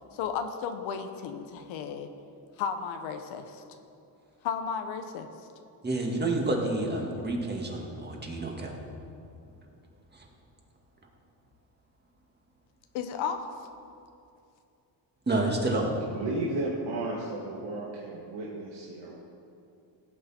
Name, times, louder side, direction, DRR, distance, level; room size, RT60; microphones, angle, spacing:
voice 1, 0.1-2.1 2.6-3.6 4.4-5.3 12.9-13.5, left 7 dB, 85° left, 7 dB, 0.9 m, -33 dB
voice 2, 5.8-8.7 10.1-10.3 15.3-16.0, right 2 dB, 20° right, 0 dB, 2.0 m, -29 dB
voice 3, 16.1-19.2, right 2 dB, 75° right, -5 dB, 2.0 m, -34 dB
16.5 x 8.6 x 4.3 m, 2.6 s
cardioid pair, 105°, 46 cm